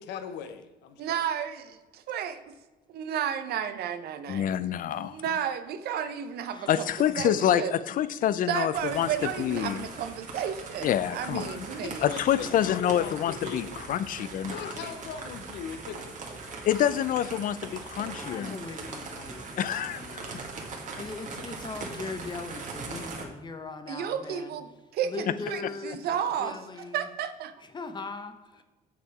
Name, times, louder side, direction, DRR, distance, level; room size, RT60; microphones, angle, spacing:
voice 1, 0.0-1.2 11.8-13.8 14.5-16.0, left 7 dB, 85° left, 9 dB, 0.9 m, -39 dB
voice 2, 1.0-2.4 2.9-4.5 4.9-6.8 7.2-7.7 8.5-12.1 23.9-24.7 24.9-25.1 25.5-25.6 25.8-26.6 26.9-27.5, right 9 dB, 70° right, 9 dB, 0.8 m, -32 dB
voice 3, 4.3-5.2 6.7-9.9 10.8-11.7 12.0-14.7 16.6-18.6 19.6-20.0, left 10 dB, 55° left, 16 dB, 0.5 m, -27 dB
voice 4, 6.5-7.0 12.4-13.0 18.0-27.1 27.6-28.6, left 4 dB, 25° left, 8 dB, 0.9 m, -41 dB
sound 1, 8.7-23.2, right 3 dB, 45° right, 1.8 m, -40 dB
7.2 x 6.8 x 4.8 m, 1.2 s
cardioid pair, 110°, 17 cm